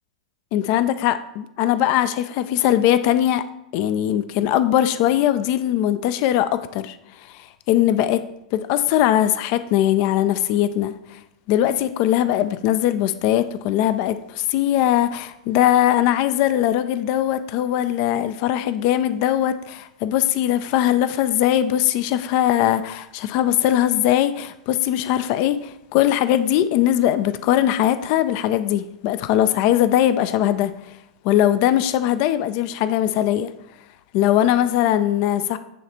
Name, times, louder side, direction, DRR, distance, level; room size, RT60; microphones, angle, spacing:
voice 1, 0.5-3.4 3.7-7.0 7.3-8.2 8.5-11.2 11.5-30.7 31.2-33.5 34.1-35.6, left 12 dB, 45° left, 12 dB, 0.4 m, -20 dB
9.1 x 3.3 x 4.2 m, 0.86 s
figure-of-eight pair, 95°, 4 cm